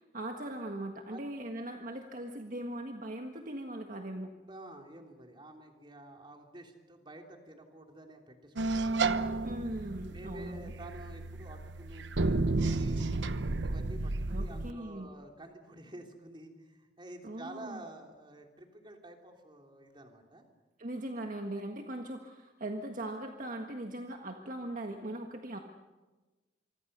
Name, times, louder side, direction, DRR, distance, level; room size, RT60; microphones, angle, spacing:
voice 1, 0.0-4.3 9.4-10.7 14.3-15.1 17.2-17.8 20.8-25.6, right 1 dB, 50° right, 4 dB, 1.6 m, -40 dB
voice 2, 4.4-9.3 10.1-13.2 13.6-20.4, right 1 dB, 25° right, 3 dB, 3.2 m, -50 dB
sound 1, 8.6-14.7, right 3 dB, 90° right, 1.0 m, -32 dB
26.5 x 24.5 x 6.8 m, 1.2 s
head